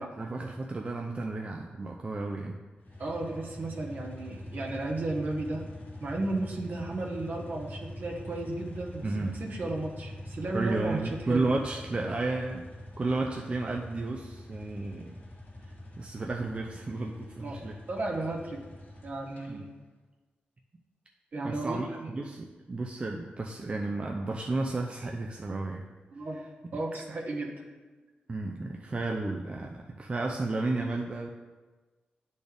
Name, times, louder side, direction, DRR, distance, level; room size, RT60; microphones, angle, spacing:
voice 1, 0.2-2.6 9.0-9.4 10.5-12.6 13.0-15.2 16.0-17.8 19.5-19.6 21.4-25.8 28.3-31.3, right 2 dB, 35° right, 1 dB, 0.5 m, -32 dB
sound 1, 2.8-19.5, left 1 dB, 65° left, 1.6 m, -44 dB
voice 2, 3.0-5.7 6.0-11.5 17.4-17.6 17.9-18.6 19.0-19.7 21.3-22.1 26.1-26.4 26.7-27.6, right 2 dB, 60° right, -1 dB, 1.2 m, -34 dB
10.0 x 4.2 x 3.4 m, 1.3 s
wide cardioid pair, 90°, 3 cm